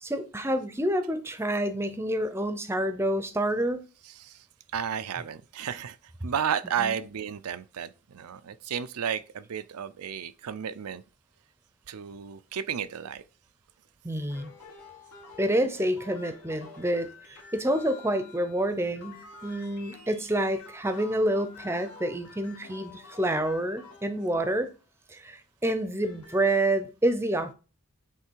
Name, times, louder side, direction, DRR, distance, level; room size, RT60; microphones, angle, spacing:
voice 1, 0.0-3.8 6.8-7.0 14.0-14.5 15.4-24.7 25.1-27.5, right 1 dB, 10° right, 0.6 m, -28 dB
voice 2, 4.1-4.5 4.7-11.0 11.9-13.2, right 8 dB, 90° right, 0.5 m, -33 dB
sound 1, 14.3-24.8 25.8-26.6, left 4 dB, 85° left, 2.1 m, -49 dB
8.2 x 3.3 x 4.5 m
head